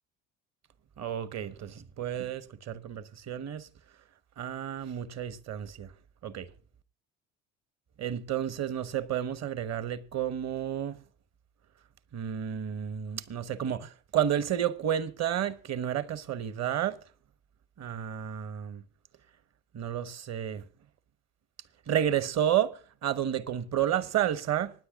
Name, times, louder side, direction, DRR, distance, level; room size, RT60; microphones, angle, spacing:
voice 1, 1.0-3.7 4.4-5.9 6.2-6.5 8.0-11.0 12.1-17.0 17.8-18.8 19.7-20.6 21.9-24.7, right 10 dB, 45° right, 1.2 m, -31 dB
25.5 x 10.0 x 2.4 m
hypercardioid pair, 60°, 37 cm